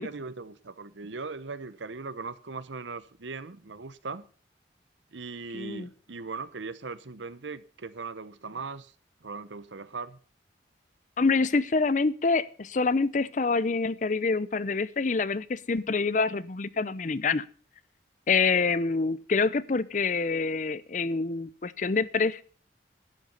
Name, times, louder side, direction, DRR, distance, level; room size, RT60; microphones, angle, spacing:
voice 1, 0.0-4.2 5.1-8.9 9.2-10.2, right 4 dB, 80° right, 16 dB, 0.9 m, -39 dB
voice 2, 5.5-5.9 11.2-17.4 18.3-22.4, left 4 dB, 40° left, 18 dB, 0.5 m, -26 dB
11.5 x 9.5 x 5.4 m, 0.40 s
head